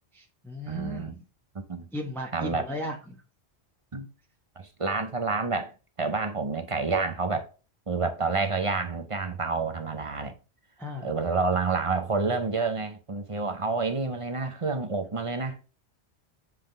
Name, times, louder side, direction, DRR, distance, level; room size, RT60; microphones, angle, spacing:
voice 1, 0.1-1.2 1.9-3.2 10.8-11.1, equal, ahead, 0.9 m, -36 dB
voice 2, 0.7-1.2 1.7-1.9 2.3-2.6 3.9-4.1 4.6-5.7 6.0-7.5 7.9-10.3 11.0-15.6, right 4 dB, 35° right, 0.8 m, -28 dB
7.6 x 3.7 x 3.3 m
omnidirectional pair, 1.1 m